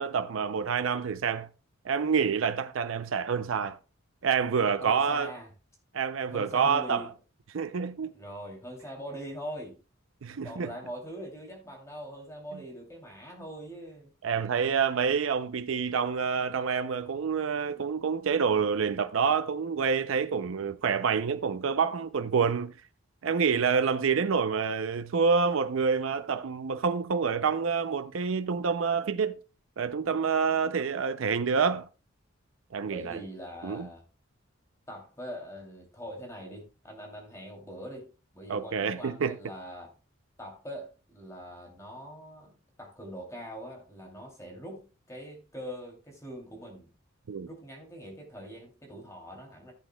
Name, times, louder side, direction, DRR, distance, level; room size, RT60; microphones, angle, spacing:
voice 1, 0.0-1.5 1.8-3.8 4.2-5.3 5.9-7.1 7.5-8.1 10.2-10.7 12.5-12.6 14.2-22.7 23.2-29.4 29.8-31.9 32.7-33.2 33.6-33.9 38.5-39.4 47.3-47.5, right 6 dB, 75° right, 0.5 m, -27 dB
voice 2, 4.8-5.5 6.3-7.1 8.1-9.8 10.4-14.1 32.8-34.0 34.9-38.1 38.3-39.9 40.4-46.9 47.4-49.7, equal, 15° left, 2.8 m, -42 dB
15.0 x 8.1 x 2.2 m
head